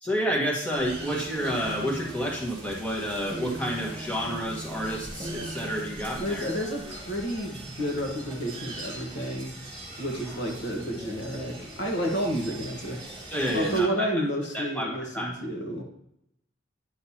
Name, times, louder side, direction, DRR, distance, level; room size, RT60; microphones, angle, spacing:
voice 1, 0.0-6.5 13.3-14.1 14.5-15.3, equal, 5° left, -3 dB, 1.4 m, -30 dB
sound 1, 0.7-13.8, right 1 dB, 30° right, 2.7 m, -40 dB
voice 2, 6.2-9.6 10.0-13.0 13.5-15.8, equal, 55° left, 1 dB, 1.3 m, -30 dB
10.0 x 6.5 x 2.8 m, 0.78 s
head